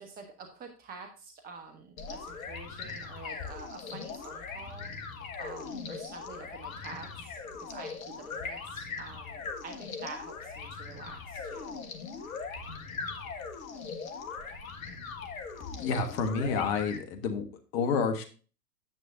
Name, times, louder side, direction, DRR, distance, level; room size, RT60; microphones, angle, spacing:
voice 1, 0.0-11.8, right 4 dB, 20° right, 4 dB, 1.2 m, -47 dB
sound 1, 2.0-17.0, left 5 dB, 60° left, 1.5 m, -40 dB
voice 2, 15.8-17.4 17.7-18.2, left 5 dB, 40° left, 7 dB, 1.4 m, -29 dB
10.0 x 8.3 x 2.6 m, 0.37 s
figure-of-eight pair, 100°, 47 cm